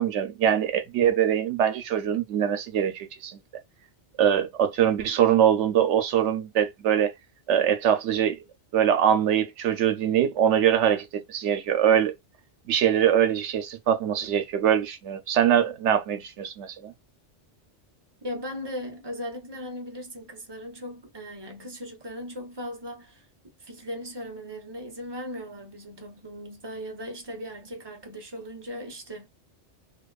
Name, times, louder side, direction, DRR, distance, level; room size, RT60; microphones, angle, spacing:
voice 1, 0.0-3.4 4.2-7.1 7.5-8.4 8.7-12.1 12.7-16.9, right 9 dB, 75° right, 0.9 m, -23 dB
voice 2, 18.2-23.3 23.6-29.3, equal, 25° right, 0.6 m, -38 dB
2.5 x 2.3 x 2.3 m
omnidirectional pair, 1.2 m